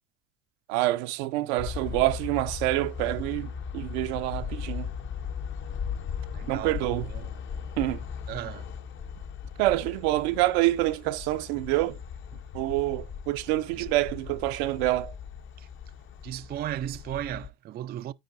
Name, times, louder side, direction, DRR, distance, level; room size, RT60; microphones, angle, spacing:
voice 1, 0.7-4.9 6.5-7.1 7.8-8.0 9.6-12.0 12.5-15.1, right 17 dB, 75° right, 0.7 m, -27 dB
sound 1, 1.6-17.5, left 7 dB, 40° left, 0.8 m, -38 dB
voice 2, 6.3-7.3 8.3-8.7 12.3-12.4 13.7-13.9 15.6-15.7 16.2-18.1, right 12 dB, 30° right, 0.4 m, -36 dB
13.5 x 4.7 x 2.5 m
supercardioid pair, 100°, 32 cm